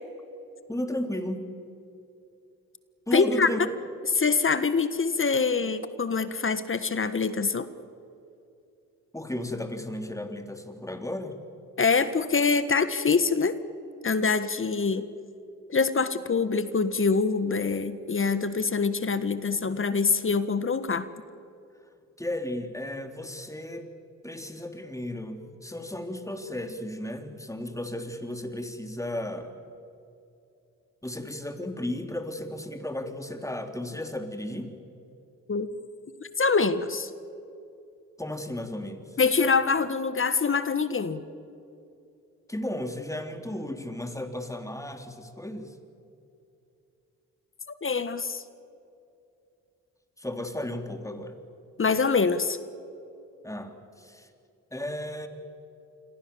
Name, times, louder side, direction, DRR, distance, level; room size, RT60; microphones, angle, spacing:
voice 1, 0.7-1.5 3.1-3.6 9.1-11.4 22.2-23.9 24.2-29.5 31.0-34.7 38.2-39.2 42.5-45.8 50.2-51.4 53.4-54.3 54.7-55.3, left 1 dB, 10° left, 6 dB, 3.5 m, -34 dB
voice 2, 3.1-3.5 4.1-7.7 11.8-13.6 14.0-15.1 15.7-21.1 35.5-35.7 36.2-37.1 39.2-41.2 47.8-48.4 51.8-52.6, left 4 dB, 40° left, 13 dB, 1.6 m, -25 dB
27.5 x 22.0 x 7.2 m, 2.6 s
supercardioid pair, 50°, 33 cm